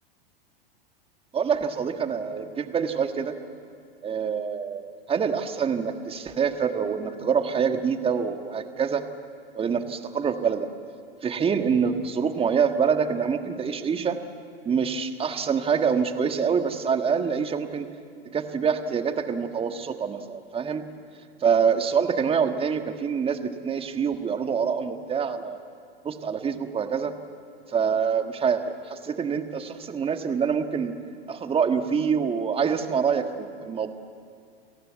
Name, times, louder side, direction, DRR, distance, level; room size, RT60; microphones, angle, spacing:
voice 1, 1.3-3.3 4.0-9.0 9.5-10.7 11.2-14.2 14.6-17.9 18.2-20.8 21.4-25.6 26.0-27.1 27.7-30.9 31.3-33.9, right 6 dB, 20° right, 7 dB, 1.6 m, -26 dB
29.5 x 18.0 x 8.2 m, 2.3 s
hypercardioid pair, 110°, 30 cm